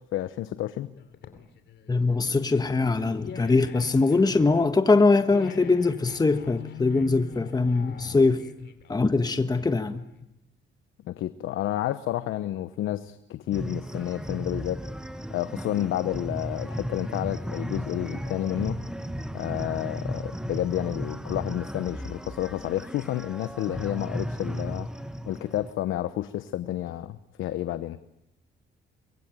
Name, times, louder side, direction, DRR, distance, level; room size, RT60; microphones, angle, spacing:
voice 1, 0.1-0.9 11.1-14.8 15.3-18.8 19.3-24.9 25.3-28.0, left 13 dB, 85° left, 1.0 m, -30 dB
sound 1, 1.0-10.0, left 6 dB, 65° left, 3.1 m, -42 dB
voice 2, 1.9-8.4 8.9-10.1, left 3 dB, 20° left, 1.4 m, -22 dB
sound 2, 13.5-25.7, equal, 5° right, 1.5 m, -35 dB
25.5 x 22.0 x 9.1 m
cardioid pair, 90°, 20 cm